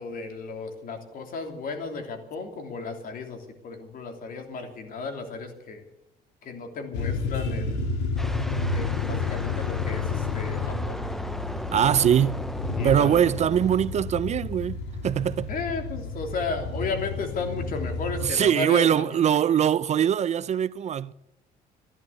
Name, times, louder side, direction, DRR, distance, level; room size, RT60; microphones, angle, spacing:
voice 1, 0.0-5.8 6.4-8.0 8.7-11.1 11.5-12.0 12.8-13.3 15.5-19.2, left 4 dB, 55° left, 3.2 m, -34 dB
sound 1, 6.9-18.2, left 4 dB, 90° left, 2.3 m, -31 dB
sound 2, 8.2-14.5, equal, ahead, 0.7 m, -38 dB
voice 2, 11.7-12.5 12.8-15.5 18.2-21.1, right 9 dB, 40° right, 0.5 m, -22 dB
14.5 x 11.0 x 8.2 m
cardioid pair, 110°, 17 cm